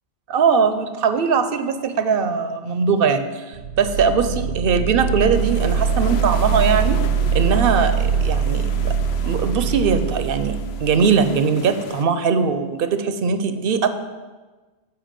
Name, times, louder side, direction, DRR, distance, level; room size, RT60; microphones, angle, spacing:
voice 1, 0.3-7.0 7.3-9.0 9.2-13.9, right 5 dB, 60° right, 10 dB, 0.7 m, -20 dB
sound 1, 3.5-11.3, right 6 dB, 80° right, 1.0 m, -23 dB
sound 2, 5.3-12.0, left 7 dB, 65° left, 0.8 m, -37 dB
8.9 x 4.6 x 7.4 m, 1.3 s
omnidirectional pair, 1.2 m